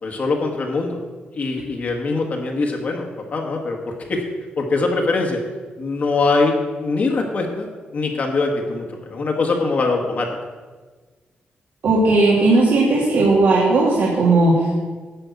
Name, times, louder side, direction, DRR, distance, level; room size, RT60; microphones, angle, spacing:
voice 1, 0.0-1.0 1.3-4.2 4.6-5.4 5.8-6.5 6.8-7.7 7.9-10.3, left 3 dB, 45° left, 1 dB, 1.4 m, -22 dB
voice 2, 11.8-14.7, right 2 dB, 70° right, -7 dB, 2.6 m, -16 dB
11.5 x 5.3 x 8.2 m, 1.4 s
wide cardioid pair, 150°, 4 cm